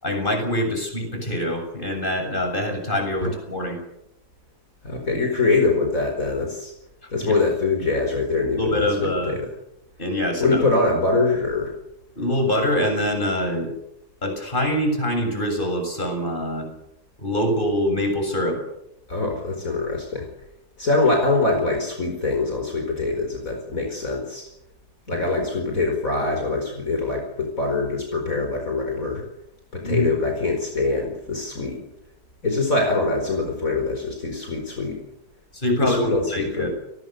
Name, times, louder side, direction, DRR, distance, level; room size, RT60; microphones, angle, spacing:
voice 1, 0.0-3.8 7.2-7.4 8.6-9.4 10.0-10.7 12.2-13.7 14.2-16.7 17.2-18.6 29.8-30.1 35.5-36.7, left 1 dB, 30° left, 4 dB, 7.5 m, -24 dB
voice 2, 4.8-6.7 7.1-9.5 10.4-11.7 19.1-20.3 20.8-24.5 25.1-29.2 29.7-31.8 32.4-35.0 35.8-36.7, left 3 dB, 55° left, 2 dB, 5.3 m, -23 dB
29.5 x 20.0 x 6.8 m, 0.80 s
omnidirectional pair, 1.7 m